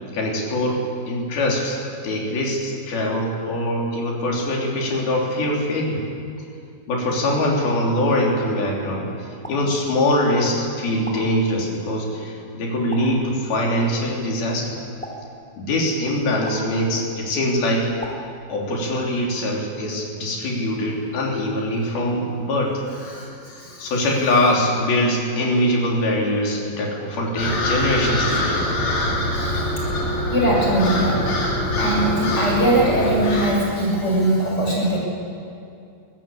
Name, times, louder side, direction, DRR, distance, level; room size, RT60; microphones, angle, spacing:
voice 1, 0.1-1.8 2.0-6.0 6.9-9.1 9.5-14.8 15.6-17.9 18.5-22.8 23.8-28.6, left 1 dB, 85° left, -2 dB, 5.3 m, -23 dB
sound 1, 9.4-10.3 11.0-11.9 12.9-13.7 15.0-15.9 16.5-17.3 18.0-19.0, right 1 dB, ahead, 2.8 m, -40 dB
voice 2, 23.0-23.9 28.3-28.5 29.0-29.8 30.3-35.0, right 1 dB, 25° left, -3 dB, 7.0 m, -22 dB
sound 2, 27.4-33.5, left 1 dB, 55° left, 4.8 m, -23 dB
23.5 x 15.5 x 8.6 m, 2.5 s
omnidirectional pair, 4.2 m